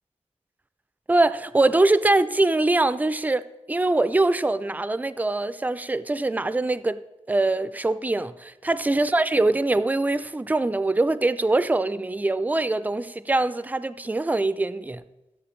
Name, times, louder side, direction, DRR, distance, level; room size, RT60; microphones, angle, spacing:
voice 1, 1.1-7.0 7.3-15.0, right 2 dB, 15° right, 0.3 m, -23 dB
14.0 x 7.9 x 3.2 m
wide cardioid pair, 90°, 13 cm